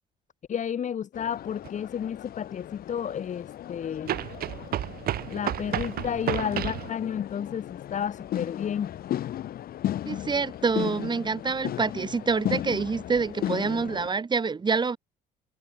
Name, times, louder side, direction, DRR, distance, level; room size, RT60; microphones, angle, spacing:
voice 1, 0.5-4.1 5.3-8.9, left 8 dB, 45° left, 3.3 m, -31 dB
sound 1, 1.1-14.1, left 12 dB, 60° left, 3.6 m, -36 dB
sound 2, 1.6-1.7 4.1-6.9, right 12 dB, 65° right, 3.2 m, -31 dB
voice 2, 10.1-15.0, right 5 dB, 25° right, 3.7 m, -27 dB
cardioid pair, 110°, 17 cm